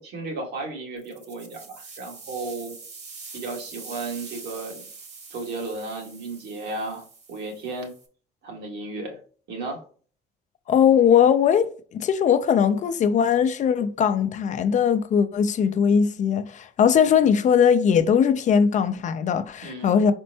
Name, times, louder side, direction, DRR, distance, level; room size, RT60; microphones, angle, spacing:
voice 1, 0.0-2.8 3.3-4.9 5.3-7.9 8.4-9.2 9.5-9.8 19.6-19.9, right 3 dB, 75° right, 1.8 m, -34 dB
sound 1, 1.0-8.1, right 4 dB, 40° right, 1.2 m, -44 dB
voice 2, 10.7-20.1, left 7 dB, 45° left, 0.5 m, -20 dB
4.3 x 4.3 x 2.8 m
cardioid pair, 110°, 17 cm